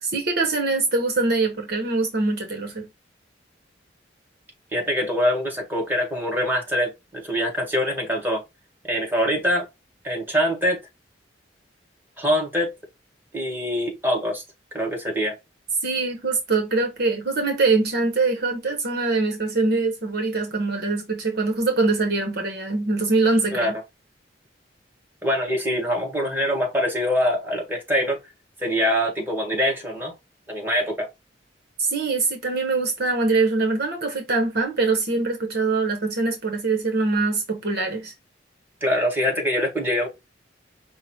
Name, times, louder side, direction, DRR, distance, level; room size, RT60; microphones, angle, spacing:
voice 1, 0.0-2.9 15.8-23.7 31.8-38.1, right 3 dB, 60° right, 0.9 m, -23 dB
voice 2, 4.7-8.4 8.9-9.7 10.0-10.8 12.2-12.7 13.3-14.4 14.7-15.3 23.5-23.7 25.2-28.2 28.6-30.1 30.5-31.1 38.8-40.1, equal, 10° right, 1.7 m, -24 dB
5.6 x 2.1 x 4.2 m
head